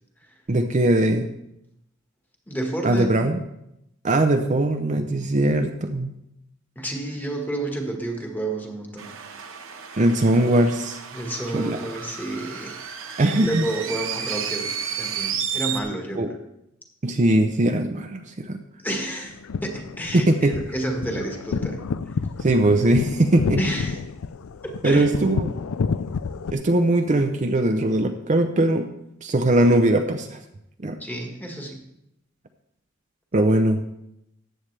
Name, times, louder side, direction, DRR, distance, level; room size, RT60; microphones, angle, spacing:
voice 1, 0.5-1.3 2.8-3.4 4.0-6.1 10.0-11.0 11.5-11.8 13.2-13.6 16.1-16.4 17.0-18.6 20.1-20.6 22.4-23.6 24.8-25.6 26.5-28.9 29.2-30.4 30.8-31.0 33.3-33.8, right 1 dB, 35° right, 6 dB, 0.6 m, -20 dB
voice 2, 2.5-3.2 6.7-9.2 11.1-12.9 13.3-16.4 18.8-21.9 23.6-24.0 24.6-25.1 31.0-31.8, right 1 dB, 10° left, 2 dB, 1.5 m, -30 dB
sound 1, 9.0-15.8, right 8 dB, 70° right, 1.0 m, -32 dB
sound 2, 19.3-26.5, left 5 dB, 90° left, 0.4 m, -30 dB
14.5 x 8.8 x 3.3 m, 0.84 s
head